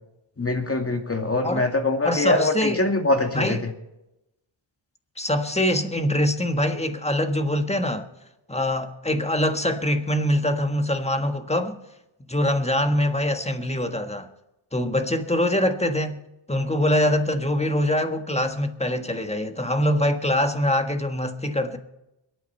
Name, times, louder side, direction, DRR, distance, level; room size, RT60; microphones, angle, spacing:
voice 1, 0.4-3.7, left 2 dB, 30° left, 2.2 m, -23 dB
voice 2, 2.0-2.8 3.3-3.6 5.2-8.1 8.5-11.8 12.3-14.3 14.7-16.2 16.5-21.8, left 1 dB, 15° left, 1.5 m, -24 dB
23.0 x 9.1 x 4.4 m
cardioid pair, 60°, 48 cm